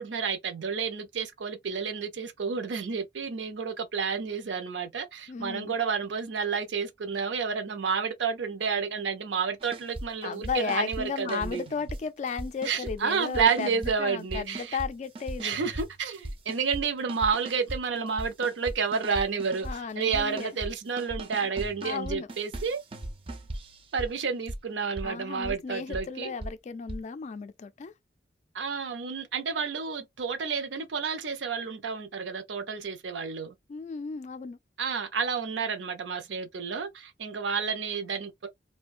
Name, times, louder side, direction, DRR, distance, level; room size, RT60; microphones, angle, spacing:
voice 1, 0.0-11.6 12.6-14.8 15.4-22.8 23.9-26.3 28.5-33.5 34.8-38.5, right 5 dB, 80° right, 0.5 m, -30 dB
voice 2, 5.3-5.7 10.2-13.7 14.0-15.6 19.6-20.5 21.4-21.5 21.8-22.3 25.0-27.9 33.7-34.6, left 5 dB, 40° left, 0.3 m, -34 dB
sound 1, 9.6-10.1 10.3-11.0 11.3-12.0 12.3-13.0 13.3-13.9 14.3-14.9 15.2-16.8 17.1-17.8 18.1-19.8 20.1-20.7 21.0-24.1 24.5-24.6 25.0-25.1 25.4-25.5 25.9-26.0 26.4-26.5 26.9-27.0, right 1 dB, 30° right, 0.4 m, -38 dB
2.5 x 2.2 x 2.4 m
head